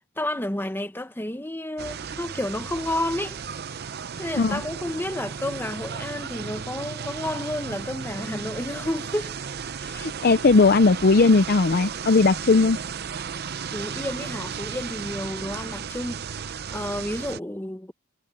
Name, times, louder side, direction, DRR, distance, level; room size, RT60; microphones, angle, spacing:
voice 1, 0.2-3.4 4.2-9.3 13.7-17.9, left 1 dB, 10° left, 0.9 m, -31 dB
sound 1, 1.8-17.4, right 6 dB, 50° right, 0.6 m, -35 dB
voice 2, 9.8-12.8, left 3 dB, 45° left, 0.5 m, -18 dB
head